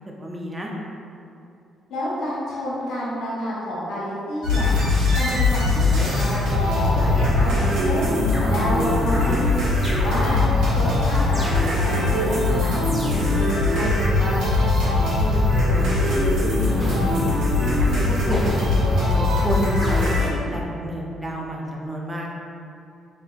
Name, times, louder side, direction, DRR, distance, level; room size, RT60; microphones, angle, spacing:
voice 1, 0.1-0.7 13.0-14.4 14.8-16.8 17.6-22.3, equal, 15° right, -2 dB, 0.6 m, -31 dB
voice 2, 1.9-4.7 5.1-8.1 8.5-9.5 9.8-10.4 10.7-12.7, equal, 80° left, -8 dB, 1.1 m, -29 dB
sound 1, 4.4-20.3, left 2 dB, 85° right, 1.3 m, -21 dB
sound 2, 6.8-7.6 8.3-9.1 9.8-10.6 11.3-12.1 12.8-13.6 16.8-17.6 18.3-19.1 19.8-20.5, equal, 10° left, 1.0 m, -34 dB
3.9 x 3.4 x 2.4 m, 2.6 s
cardioid pair, 90°, 0 cm